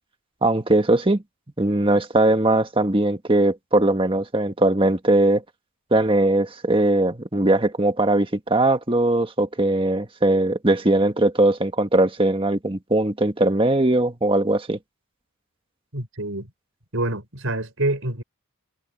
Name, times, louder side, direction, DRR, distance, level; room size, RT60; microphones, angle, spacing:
voice 1, 0.4-1.2 1.6-5.4 5.9-14.8, right 1 dB, 25° right, 1.5 m, -20 dB
voice 2, 15.9-16.5 16.9-18.2, right 1 dB, 70° right, 5.4 m, -26 dB
head